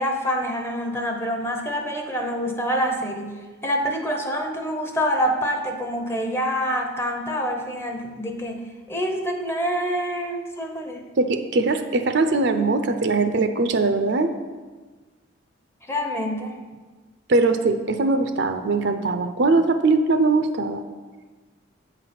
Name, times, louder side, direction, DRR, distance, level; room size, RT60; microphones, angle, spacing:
voice 1, 0.0-8.6 8.9-11.0 15.9-16.6, equal, 15° left, 3 dB, 0.7 m, -26 dB
voice 2, 11.2-14.3 17.3-20.8, right 3 dB, 60° right, 8 dB, 0.5 m, -21 dB
8.7 x 4.0 x 5.9 m, 1.3 s
head